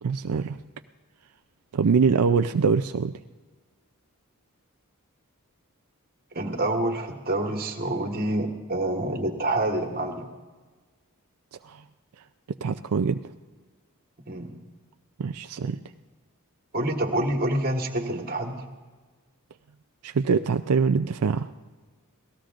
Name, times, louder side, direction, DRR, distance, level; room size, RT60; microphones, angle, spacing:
voice 1, 0.0-0.6 1.7-3.1 11.6-11.8 12.6-13.2 15.2-15.8 20.0-21.5, right 5 dB, 90° right, 8 dB, 0.5 m, -23 dB
voice 2, 6.3-10.3 14.3-14.6 16.7-18.7, right 1 dB, 45° right, 3 dB, 1.6 m, -27 dB
27.0 x 18.0 x 2.6 m, 1.3 s
head